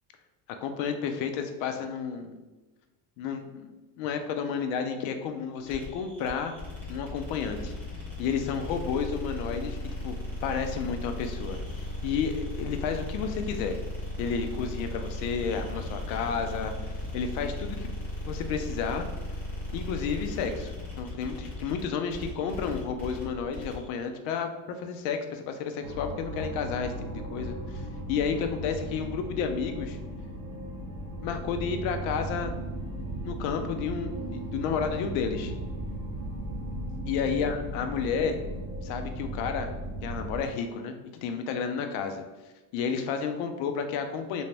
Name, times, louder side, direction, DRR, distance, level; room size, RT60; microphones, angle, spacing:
voice 1, 0.6-2.4 3.2-3.7 4.0-6.5 6.9-7.7 8.2-9.8 10.0-10.2 10.4-11.6 12.0-13.8 14.2-16.7 17.1-17.9 18.3-19.0 19.7-24.5 24.8-26.9 27.3-30.0 31.2-32.8 33.2-35.5 37.1-38.4 38.8-39.7 40.0-42.2 42.7-44.4, left 6 dB, 65° left, 6 dB, 0.6 m, -31 dB
sound 1, 5.6-23.9, left 1 dB, 5° left, 0.9 m, -36 dB
sound 2, 25.8-40.4, right 1 dB, 60° right, 0.9 m, -36 dB
3.4 x 2.7 x 3.2 m, 1.2 s
cardioid pair, 170°, 45 cm